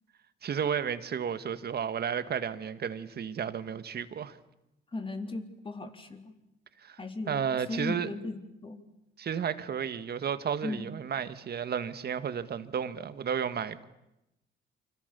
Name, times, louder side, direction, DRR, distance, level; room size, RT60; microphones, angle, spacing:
voice 1, 0.4-4.4 6.8-7.0 7.3-8.1 9.2-13.8, right 7 dB, 55° right, 1.7 m, -32 dB
voice 2, 4.9-6.3 7.0-7.4 7.7-8.8 10.6-10.8, left 2 dB, 25° left, 3.8 m, -37 dB
29.0 x 26.0 x 6.9 m
cardioid pair, 90°, 20 cm